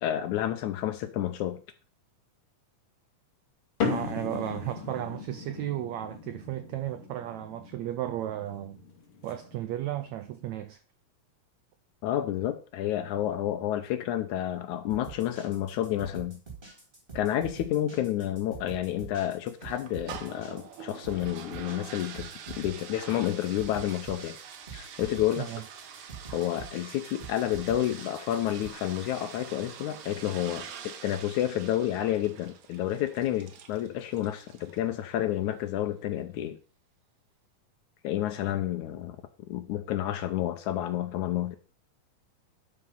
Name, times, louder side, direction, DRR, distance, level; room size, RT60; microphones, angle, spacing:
voice 1, 0.0-1.6 12.0-16.4 17.1-24.4 24.7-25.5 26.3-36.6 38.0-39.2 39.5-41.6, left 12 dB, 75° left, 1.9 m, -30 dB
sound 1, 3.8-10.5, left 5 dB, 45° left, 2.5 m, -37 dB
voice 2, 3.9-8.8 9.2-10.8 25.4-25.6, right 13 dB, 85° right, 1.6 m, -34 dB
sound 2, 14.9-28.7, right 6 dB, 15° right, 2.9 m, -45 dB
sound 3, 19.6-34.9, right 8 dB, 65° right, 2.2 m, -45 dB
12.0 x 5.2 x 5.4 m
omnidirectional pair, 4.0 m